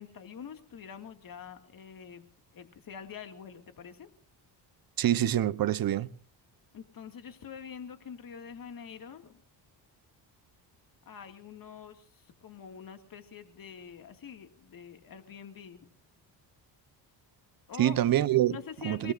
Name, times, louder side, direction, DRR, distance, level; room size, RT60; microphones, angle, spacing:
voice 1, 0.0-2.2 2.5-4.1 6.7-9.4 11.1-15.9 17.7-18.1 18.5-19.1, left 7 dB, 50° left, 2.2 m, -45 dB
voice 2, 5.0-6.1 17.8-18.6 18.8-19.1, right 12 dB, 50° right, 0.9 m, -25 dB
29.5 x 19.0 x 2.6 m
cardioid pair, 110°, 43 cm